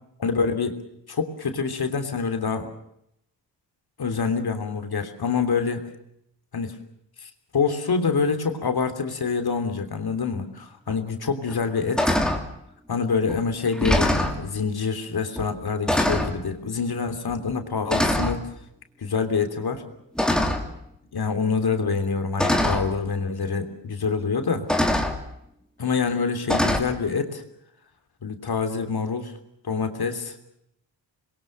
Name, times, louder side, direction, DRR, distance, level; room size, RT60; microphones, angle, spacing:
voice 1, 0.2-0.8 1.1-2.7 4.0-5.9 6.5-6.8 7.2-12.2 12.9-18.5 19.0-19.8 21.1-24.6 25.8-27.4 28.2-29.3 29.6-30.3, left 5 dB, 60° left, 6 dB, 3.3 m, -26 dB
sound 1, 10.9-11.0 11.5-11.7 12.0-12.5 13.3-13.4 13.7-14.4 15.4-15.5 15.9-16.4 17.3-17.5 17.9-18.4 20.2-20.8 21.9-22.0 22.4-22.9 24.0-24.1 24.7-25.2 26.5-26.8, left 1 dB, ahead, 2.8 m, -23 dB
27.5 x 22.0 x 6.6 m, 0.78 s
wide cardioid pair, 110°, 43 cm